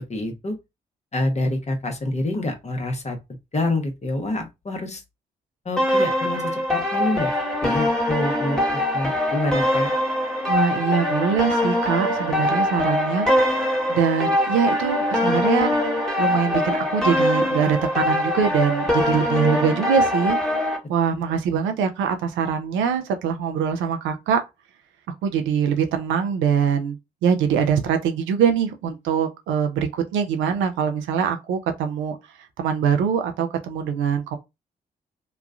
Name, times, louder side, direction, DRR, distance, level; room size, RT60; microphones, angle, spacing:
voice 1, 0.1-0.6 1.1-3.2 3.5-5.0 5.6-7.3 7.6-8.6 8.9-9.9, left 1 dB, 35° left, 1.1 m, -27 dB
sound 1, 5.8-20.8, left 1 dB, 5° left, 1.3 m, -22 dB
voice 2, 10.5-13.6 13.9-15.7 16.2-20.4 20.9-24.4 25.2-27.0 27.2-32.2 32.6-34.4, right 7 dB, 75° right, 0.6 m, -23 dB
3.0 x 2.3 x 2.4 m
hypercardioid pair, 45°, 20 cm